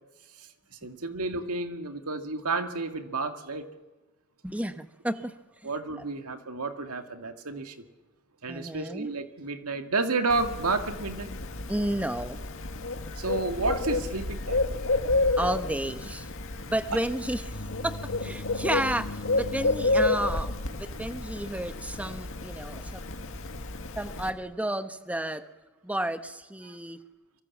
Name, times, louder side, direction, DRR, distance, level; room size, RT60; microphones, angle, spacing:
voice 1, 0.8-3.7 5.6-7.8 8.4-11.3 13.2-14.8 26.6-26.8, right 3 dB, 80° right, 6 dB, 2.1 m, -31 dB
voice 2, 4.4-5.3 5.6-5.7 8.5-9.1 11.7-12.4 15.4-16.3 16.7-23.0 24.0-25.4 25.8-27.0, right 1 dB, 5° right, 10 dB, 1.0 m, -32 dB
Bird, 10.3-24.3, left 2 dB, 60° left, 2.0 m, -30 dB
25.0 x 24.0 x 7.3 m, 1.2 s
head